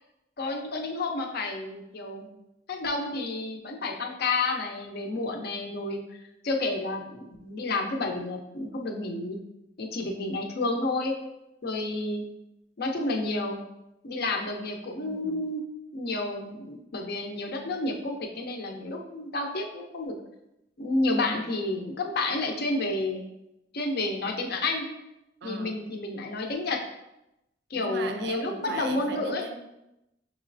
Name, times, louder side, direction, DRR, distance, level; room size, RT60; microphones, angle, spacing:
voice 1, 0.4-2.3 2.7-6.0 6.4-9.4 9.8-11.1 11.6-12.2 12.8-13.6 14.0-15.6 15.9-20.2 20.8-23.2 23.7-24.9 25.4-26.8 27.7-29.4, left 2 dB, 60° left, 2 dB, 0.6 m, -30 dB
voice 2, 15.0-15.4 25.4-25.8 27.7-29.5, right 3 dB, 65° right, 7 dB, 0.5 m, -37 dB
6.0 x 3.0 x 2.6 m, 0.88 s
head